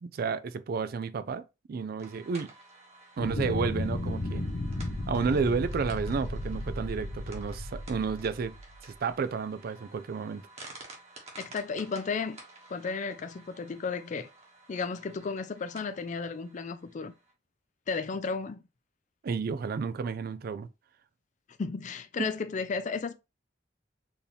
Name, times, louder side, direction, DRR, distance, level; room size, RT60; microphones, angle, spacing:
voice 1, 0.0-2.5 3.2-4.4 5.1-8.5 8.8-10.4 19.2-20.7 22.2-22.3, right 5 dB, 55° right, 0.4 m, -31 dB
sound 1, 2.0-17.3, right 2 dB, 35° right, 1.3 m, -52 dB
sound 2, 3.2-8.9, left 1 dB, 85° left, 0.9 m, -34 dB
voice 2, 11.4-12.4 12.7-14.3 14.7-17.1 17.9-18.6 21.6-23.1, left 5 dB, 40° left, 0.4 m, -33 dB
4.5 x 2.8 x 3.3 m
head